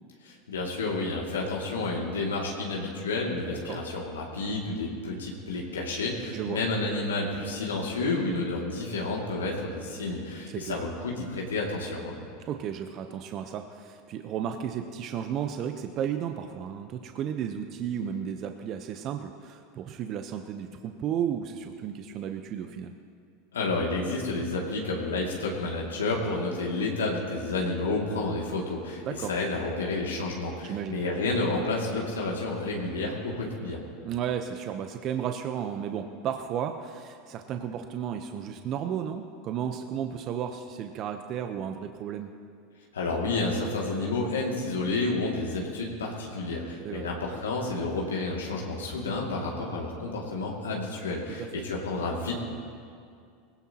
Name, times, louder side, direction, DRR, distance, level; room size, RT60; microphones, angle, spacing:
voice 1, 0.2-12.2 23.5-33.8 42.9-52.3, left 2 dB, 85° left, -3 dB, 2.4 m, -30 dB
voice 2, 10.5-10.8 12.5-22.9 29.0-29.3 30.6-31.0 34.0-42.3 46.8-47.1 51.4-51.5, right 9 dB, 45° right, 6 dB, 0.9 m, -33 dB
20.0 x 17.0 x 3.0 m, 2.3 s
hypercardioid pair, 90°, 0 cm